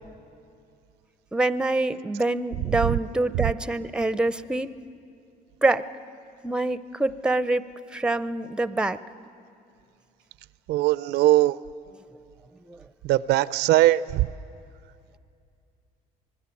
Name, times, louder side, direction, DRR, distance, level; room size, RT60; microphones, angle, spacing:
voice 1, 1.3-4.7 5.6-5.8 6.4-7.7 7.9-9.0 12.7-12.8, right 2 dB, 5° right, 15 dB, 0.6 m, -25 dB
voice 2, 10.7-11.6 13.0-14.3, right 16 dB, 85° right, 18 dB, 0.5 m, -20 dB
25.5 x 19.5 x 8.4 m, 2.5 s
cardioid pair, 110°, 17 cm